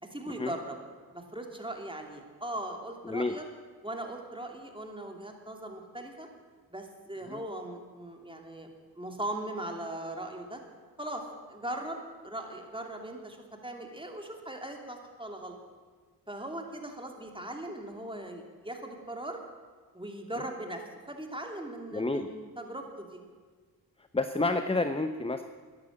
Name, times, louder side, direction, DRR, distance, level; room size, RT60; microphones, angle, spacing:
voice 1, 0.0-0.8 1.1-3.4 3.8-6.3 6.7-8.7 8.9-10.6 11.0-15.6 16.3-19.4 19.9-23.2, right 1 dB, 10° right, 2 dB, 2.8 m, -39 dB
voice 2, 3.0-3.4 7.3-7.4 21.9-22.3 24.1-25.4, left 2 dB, 15° left, 9 dB, 0.8 m, -29 dB
13.5 x 10.5 x 7.4 m, 1.5 s
cardioid pair, 45°, 43 cm